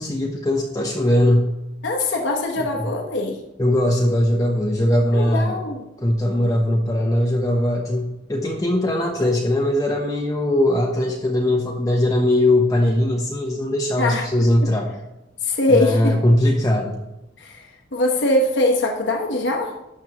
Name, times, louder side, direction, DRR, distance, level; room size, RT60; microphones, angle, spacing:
voice 1, 0.0-1.5 2.0-2.1 2.6-2.9 3.6-5.6 6.0-14.9 15.7-17.0, left 1 dB, 20° left, 0 dB, 0.8 m, -20 dB
voice 2, 1.8-3.4 5.1-5.9 14.0-14.2 14.6-14.7 15.4-16.2 17.4-19.7, left 2 dB, 65° left, 1 dB, 1.1 m, -22 dB
12.0 x 7.7 x 3.0 m, 0.95 s
head